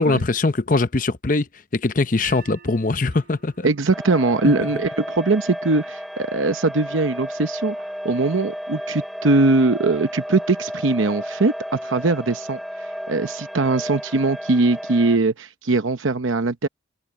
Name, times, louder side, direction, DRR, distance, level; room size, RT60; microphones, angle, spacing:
voice 1, 0.0-1.5 1.7-3.7 4.4-4.5, left 3 dB, 45° left, 0.7 m, -21 dB
sound 1, 2.2-8.4, right 9 dB, 50° right, 4.4 m, -50 dB
voice 2, 3.6-7.7 8.0-12.6 13.1-16.7, right 3 dB, 85° right, 0.8 m, -21 dB
sound 2, 3.9-15.2, equal, ahead, 4.2 m, -33 dB
open air
head